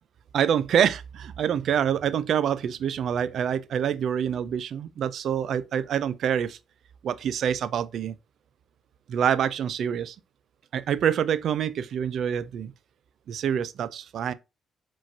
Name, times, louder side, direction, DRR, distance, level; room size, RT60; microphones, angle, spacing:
voice 1, 0.3-6.6 7.0-8.1 9.1-10.2 10.7-12.7 13.3-14.3, right 8 dB, 70° right, 0.4 m, -26 dB
5.0 x 3.8 x 2.7 m
cardioid pair, 90°, 0 cm